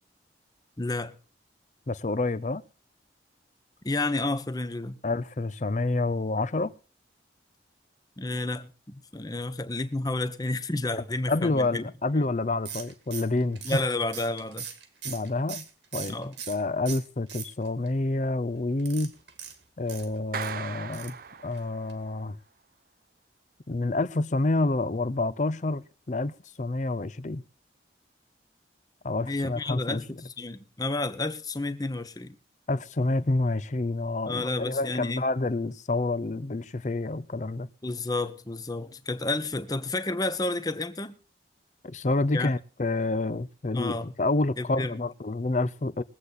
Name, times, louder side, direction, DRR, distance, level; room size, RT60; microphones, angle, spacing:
voice 1, 0.8-1.1 3.8-4.9 8.2-11.8 13.6-14.7 16.1-16.3 29.3-32.4 34.3-35.2 37.8-41.1 42.3-42.5 43.7-44.1 44.6-45.0, left 2 dB, 20° left, 0.9 m, -30 dB
voice 2, 1.9-2.6 5.0-6.7 11.3-13.8 15.0-15.7 15.9-16.2 16.5-19.1 19.8-21.1 21.4-22.4 23.7-27.4 29.0-30.0 32.7-37.7 41.8-46.0, left 2 dB, 40° left, 0.6 m, -28 dB
sound 1, 12.7-16.6 16.9-17.9 18.8-20.5 20.9-21.2 21.5-21.6 21.9-22.0, right 8 dB, 80° right, 2.1 m, -40 dB
Clapping, 20.3-22.1, right 6 dB, 50° right, 0.5 m, -38 dB
21.5 x 8.2 x 4.1 m
head